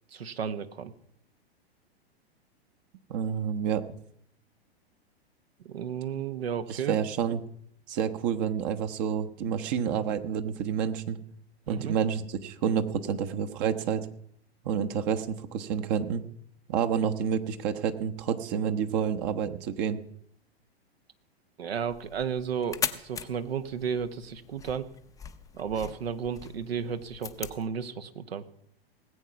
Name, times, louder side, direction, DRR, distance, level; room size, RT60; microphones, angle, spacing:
voice 1, 0.1-0.9 5.6-7.0 11.7-11.9 21.6-24.9 25.5-28.4, right 7 dB, 70° right, 11 dB, 1.3 m, -33 dB
voice 2, 3.1-3.8 6.7-7.4 7.9-11.2 11.7-14.1 14.6-16.2 16.7-20.0, right 8 dB, 40° right, 9 dB, 1.2 m, -29 dB
sound 1, 21.9-27.7, left 6 dB, 10° left, 0.7 m, -40 dB
19.5 x 8.3 x 5.9 m, 0.71 s
figure-of-eight pair, 105°, 32 cm